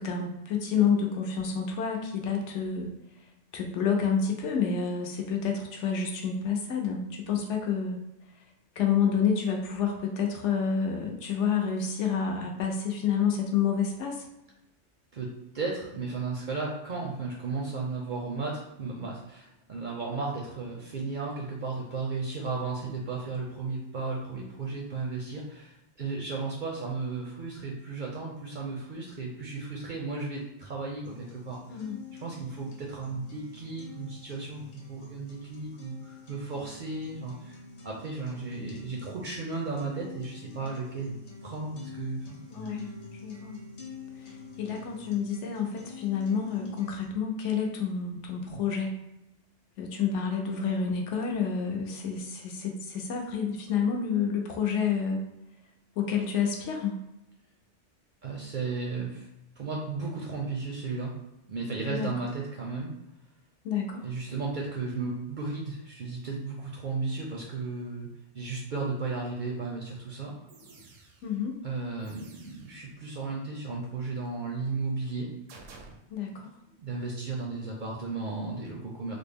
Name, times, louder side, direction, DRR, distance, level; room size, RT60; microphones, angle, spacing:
voice 1, 0.0-2.9 3.5-8.0 8.8-14.2 31.7-32.1 42.5-42.9 43.2-43.6 44.2-44.3 44.6-48.9 49.8-55.2 56.0-57.0 61.9-62.1 63.6-64.1 71.2-71.6 76.1-76.5, left 6 dB, 70° left, 1 dB, 0.9 m, -29 dB
voice 2, 15.1-31.8 32.2-34.6 34.9-37.6 37.8-41.1 41.4-42.4 58.2-59.3 59.6-61.1 61.4-62.9 64.0-68.1 68.3-70.3 71.6-75.3 76.3-76.4 76.8-79.2, right 3 dB, 55° right, -2 dB, 0.5 m, -34 dB
sound 1, 31.0-47.0, left 4 dB, 45° left, 0.5 m, -47 dB
sound 2, 69.8-69.9 70.5-71.4 72.0-72.9 75.5-75.9, right 4 dB, 85° right, 0.9 m, -51 dB
3.3 x 2.0 x 3.4 m, 0.89 s
omnidirectional pair, 1.3 m